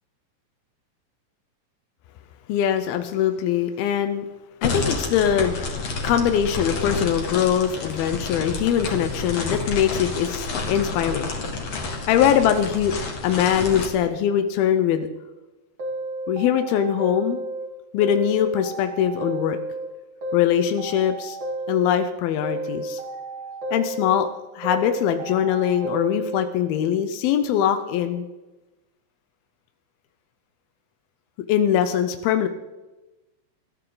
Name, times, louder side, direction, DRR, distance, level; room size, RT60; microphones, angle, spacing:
voice 1, 2.5-4.3 4.6-5.6 6.0-11.3 12.1-12.9 13.2-15.1 16.3-17.4 17.9-19.6 20.3-21.4 21.7-23.0 23.7-24.3 24.6-28.3 31.5-32.5, left 9 dB, 90° left, 9 dB, 2.7 m, -22 dB
sound 1, 4.6-13.9, left 3 dB, 50° left, 2.7 m, -29 dB
sound 2, 15.8-17.7 18.0-19.9 20.2-22.1 22.4-24.3 24.6-26.5, right 2 dB, 35° right, 3.1 m, -32 dB
20.5 x 13.5 x 3.9 m, 1.1 s
omnidirectional pair, 4.2 m